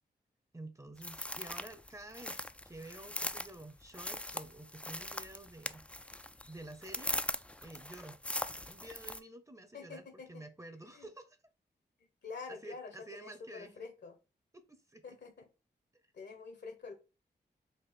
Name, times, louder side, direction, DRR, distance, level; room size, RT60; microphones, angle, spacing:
voice 1, 0.5-5.9 6.4-7.1 7.6-8.2 8.6-11.4 12.5-13.8 14.5-15.2 15.9-16.0, right 1 dB, 15° right, 0.7 m, -50 dB
sound 1, 1.0-9.2, left 1 dB, 5° left, 0.3 m, -41 dB
voice 2, 9.7-10.4 10.9-11.1 12.2-14.1 15.0-15.5 16.1-16.9, left 4 dB, 75° left, 1.3 m, -47 dB
4.2 x 2.5 x 3.5 m
cardioid pair, 45°, 18 cm